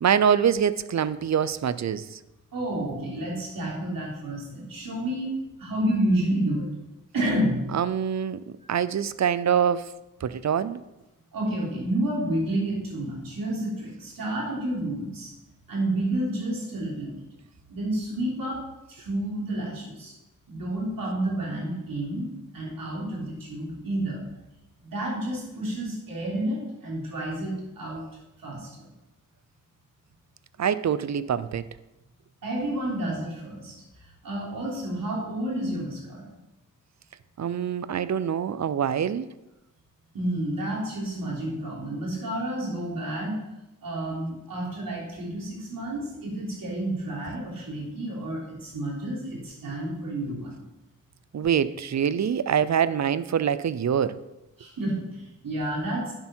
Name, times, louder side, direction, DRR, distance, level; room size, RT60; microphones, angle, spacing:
voice 1, 0.0-2.2 7.7-8.4 8.7-9.9 10.2-10.8 30.6-31.6 37.4-39.3 51.3-54.2, right 8 dB, 55° right, 0.6 m, -24 dB
voice 2, 2.5-5.3 5.6-6.7 7.1-7.6 11.3-15.3 15.7-17.1 17.7-18.6 18.9-20.1 20.5-24.2 24.8-28.0 28.4-28.9 32.4-33.8 34.2-36.2 40.1-43.4 43.8-50.6 54.6-56.1, right 1 dB, 85° right, 3.6 m, -30 dB
10.5 x 7.7 x 4.5 m
wide cardioid pair, 80°, 33 cm